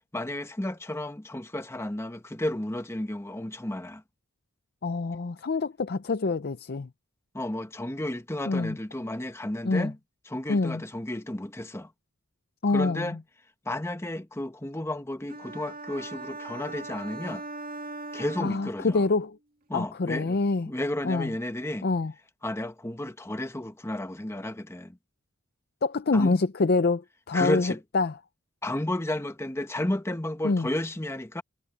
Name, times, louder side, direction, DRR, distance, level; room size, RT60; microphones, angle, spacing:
voice 1, 0.1-4.0 7.3-9.9 10.3-11.9 12.7-13.2 13.7-17.4 18.1-19.0 19.7-20.4 20.7-21.9 22.4-25.0 26.1-26.4 27.3-27.8 28.6-31.4, left 1 dB, 10° left, 1.0 m, -32 dB
voice 2, 4.8-6.9 8.5-8.8 9.6-9.9 10.5-10.8 12.6-13.2 18.4-19.4 19.7-20.7 21.0-21.3 21.8-22.1 25.8-28.2 30.4-30.7, left 3 dB, 45° left, 0.5 m, -26 dB
sound 1, 15.3-19.2, right 3 dB, 45° right, 2.1 m, -40 dB
head